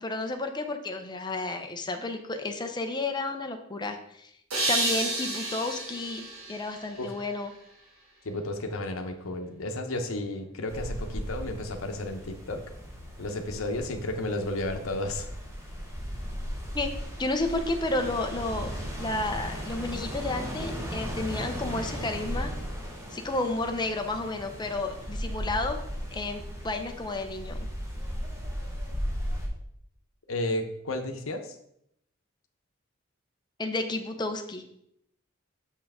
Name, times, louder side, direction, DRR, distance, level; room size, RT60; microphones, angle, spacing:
voice 1, 0.0-4.3 4.7-7.5 16.7-16.9 17.2-18.7 19.0-22.5 23.1-25.8 26.1-27.6 33.6-34.6, left 2 dB, 20° left, 5 dB, 0.7 m, -31 dB
sound 1, 4.5-7.6, right 2 dB, 70° right, 2.0 m, -31 dB
voice 2, 8.2-12.6 13.2-15.3 30.3-31.6, left 1 dB, 80° left, 6 dB, 0.8 m, -32 dB
sound 2, 10.7-29.5, equal, 15° right, 1.4 m, -36 dB
6.6 x 5.6 x 3.6 m, 0.74 s
head